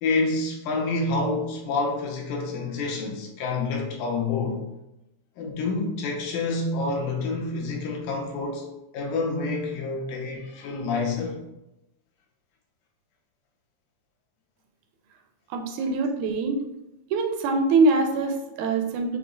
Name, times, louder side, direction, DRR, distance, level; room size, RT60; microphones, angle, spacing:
voice 1, 0.0-4.6 5.4-8.7 8.9-11.4, left 3 dB, 80° left, 0 dB, 2.2 m, -28 dB
voice 2, 15.5-16.6 17.1-19.2, right 3 dB, 80° right, 4 dB, 1.8 m, -23 dB
5.7 x 2.0 x 3.8 m, 0.92 s
omnidirectional pair, 3.4 m